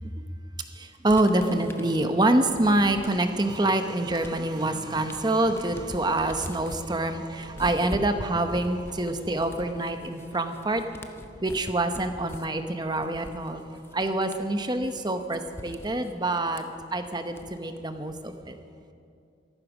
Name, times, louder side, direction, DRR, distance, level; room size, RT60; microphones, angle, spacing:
voice 1, 0.7-10.8 11.4-16.6 16.9-18.6, right 2 dB, 20° right, 7 dB, 0.9 m, -26 dB
sound 1, 1.1-3.5 3.8-17.8, left 1 dB, 10° left, 0.6 m, -44 dB
sound 2, 1.3-14.8, right 1 dB, 80° right, 4.7 m, -51 dB
14.5 x 13.5 x 6.1 m, 2.5 s
head